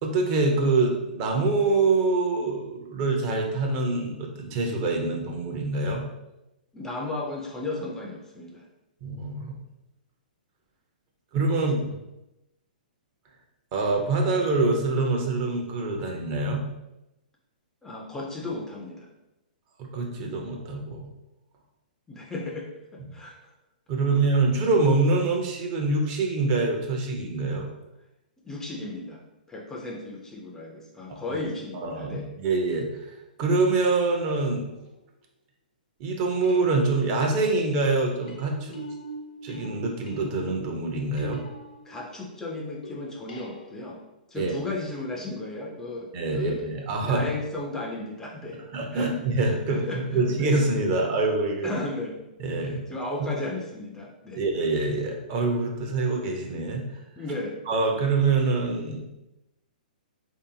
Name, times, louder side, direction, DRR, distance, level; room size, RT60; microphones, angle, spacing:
voice 1, 0.0-6.0 9.0-9.5 11.3-11.9 13.7-16.6 19.8-21.1 23.9-27.7 31.8-33.1 33.4-34.7 36.0-38.8 39.4-41.4 44.4-44.5 46.1-47.3 48.7-51.7 52.4-52.8 53.2-53.3 54.3-56.9 57.7-59.0, right 3 dB, 40° right, 1 dB, 0.6 m, -25 dB
voice 2, 6.7-8.7 17.8-19.1 22.1-23.5 28.4-29.2 29.5-32.3 41.9-44.0 44.3-46.7 47.0-48.7 48.9-49.1 49.7-50.5 51.6-52.2 52.6-54.4 57.2-57.6, left 2 dB, 10° left, -1 dB, 0.4 m, -35 dB
sound 1, 34.7-35.0 36.4-42.3 42.8-44.2 46.6-46.7, right 1 dB, 70° left, 0.8 m, -43 dB
3.3 x 2.7 x 2.7 m, 0.93 s
hypercardioid pair, 125°, 5 cm